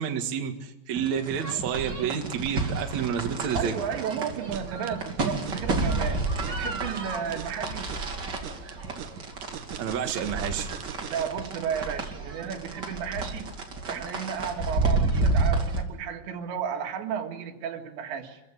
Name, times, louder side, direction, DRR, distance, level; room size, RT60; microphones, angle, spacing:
voice 1, 0.0-3.7 9.8-10.7, right 8 dB, 50° right, 4 dB, 2.6 m, -29 dB
sound 1, 1.0-15.8, right 3 dB, 30° right, 2.5 m, -30 dB
voice 2, 3.5-7.9 11.1-13.5 13.9-18.4, right 7 dB, 90° right, 4 dB, 4.3 m, -33 dB
sound 2, 4.4-11.5, right 9 dB, 65° right, 2.2 m, -41 dB
26.5 x 15.0 x 10.0 m, 0.99 s
omnidirectional pair, 5.0 m